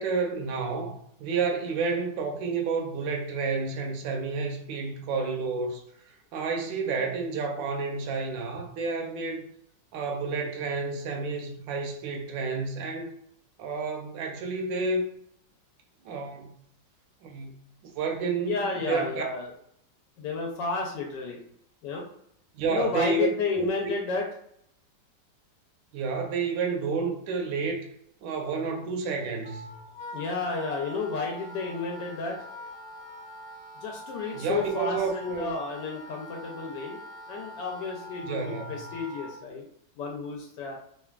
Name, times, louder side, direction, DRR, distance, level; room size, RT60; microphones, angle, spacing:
voice 1, 0.0-5.8 6.3-9.4 9.9-13.1 13.6-15.0 16.0-16.5 17.2-17.5 17.9-19.2 22.5-23.3 23.6-23.7 25.9-27.9 28.2-29.8 34.3-35.5 38.2-38.8, right 4 dB, 80° right, 2 dB, 1.2 m, -30 dB
voice 2, 18.4-19.5 20.2-21.4 21.8-22.0 22.7-24.3 30.1-32.4 33.8-37.0 37.3-39.6 40.0-40.8, left 4 dB, 75° left, 0 dB, 1.2 m, -31 dB
Wind instrument woodwind instrument, 29.4-39.4, left 1 dB, 25° left, 0.4 m, -44 dB
3.3 x 2.2 x 2.3 m, 0.70 s
omnidirectional pair, 2.0 m